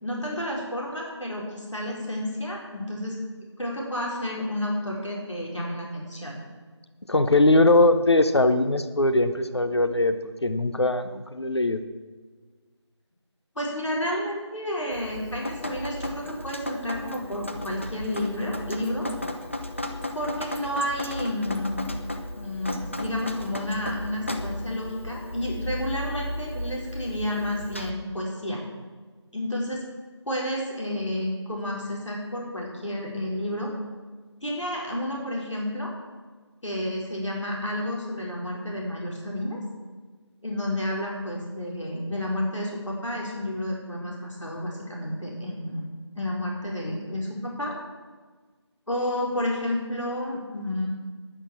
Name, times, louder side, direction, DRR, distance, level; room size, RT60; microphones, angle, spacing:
voice 1, 0.0-3.2 3.6-6.4 13.6-19.1 20.1-21.8 22.4-28.6 29.3-29.8 30.2-33.7 34.4-35.9 36.6-39.6 40.4-45.9 46.1-47.7 48.9-50.9, left 1 dB, 85° left, -2 dB, 4.5 m, -31 dB
voice 2, 7.1-10.2 10.4-11.8, left 2 dB, 60° left, 10 dB, 1.0 m, -21 dB
Drip, 14.9-27.9, left 1 dB, 25° left, 0.7 m, -35 dB
10.5 x 9.9 x 7.4 m, 1.4 s
figure-of-eight pair, 175°, 15 cm